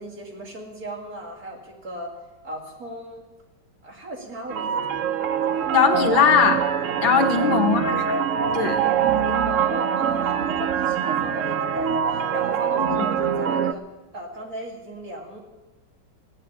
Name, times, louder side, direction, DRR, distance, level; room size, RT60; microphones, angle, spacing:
voice 1, 0.0-2.1 2.4-3.2 3.8-5.0 5.5-5.7 7.0-7.5 9.2-13.8 14.1-15.4, right 1 dB, 45° right, 0 dB, 3.1 m, -36 dB
sound 1, 4.5-13.7, right 8 dB, 80° right, 0.7 m, -24 dB
voice 2, 5.7-6.6 7.0-8.2 8.5-8.8 12.8-13.1, left 6 dB, 75° left, 6 dB, 2.1 m, -20 dB
16.0 x 9.3 x 9.7 m, 1.1 s
omnidirectional pair, 2.2 m